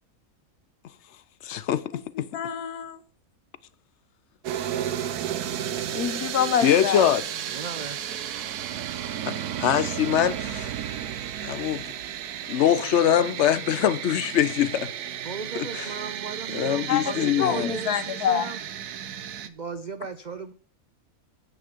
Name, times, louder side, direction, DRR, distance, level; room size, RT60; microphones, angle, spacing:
voice 1, 1.4-2.3 6.6-7.2 9.3-10.7 11.4-11.8 12.5-14.9 15.6-15.9 16.5-17.7, left 10 dB, 60° left, 0.8 m, -23 dB
voice 2, 2.3-3.0 5.9-7.1 16.9-18.5, left 9 dB, 85° left, 1.4 m, -27 dB
sound 1, 4.4-19.5, right 10 dB, 90° right, 1.3 m, -33 dB
voice 3, 7.5-8.2 15.2-18.6 19.4-20.5, right 5 dB, 70° right, 0.4 m, -36 dB
9.5 x 7.6 x 5.1 m
omnidirectional pair, 1.6 m